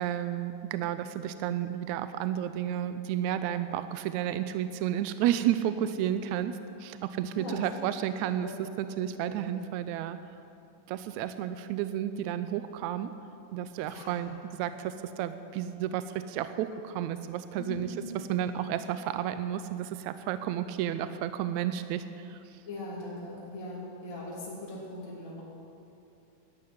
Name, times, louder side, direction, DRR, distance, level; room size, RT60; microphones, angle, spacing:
voice 1, 0.0-8.5 8.8-10.2 10.9-13.1 13.5-22.4, right 11 dB, 80° right, 11 dB, 1.7 m, -32 dB
voice 2, 7.3-7.6 8.4-8.5 9.2-9.4 13.8-14.3 17.6-17.9 22.6-25.4, left 2 dB, 35° left, -6 dB, 3.4 m, -40 dB
11.5 x 11.5 x 9.4 m, 2.7 s
omnidirectional pair, 3.7 m